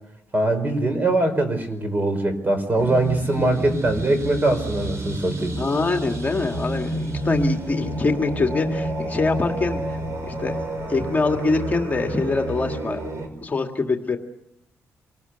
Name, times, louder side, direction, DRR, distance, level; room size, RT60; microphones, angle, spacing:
voice 1, 0.3-5.5, right 2 dB, 30° right, 8 dB, 4.8 m, -22 dB
sound 1, 2.8-13.3, right 1 dB, 55° right, 5.4 m, -29 dB
voice 2, 5.6-10.0 10.3-10.6 10.9-13.0 13.4-14.2, left 3 dB, 30° left, 3 dB, 2.2 m, -24 dB
27.0 x 19.0 x 8.2 m, 0.81 s
cardioid pair, 105°, 6 cm